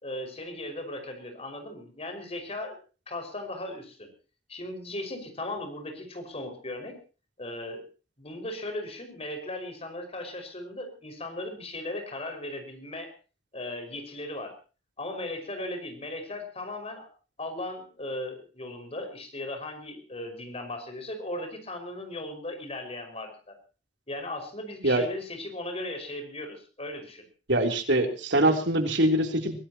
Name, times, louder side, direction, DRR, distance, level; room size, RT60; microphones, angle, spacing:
voice 1, 0.0-2.8 3.1-4.1 4.5-7.0 7.4-7.9 8.2-13.1 13.5-14.5 15.0-17.1 17.4-23.6 24.1-27.2, left 1 dB, 35° left, 5 dB, 5.5 m, -37 dB
voice 2, 27.5-29.6, right 1 dB, 80° right, 4 dB, 3.5 m, -23 dB
24.0 x 18.0 x 3.0 m, 0.36 s
head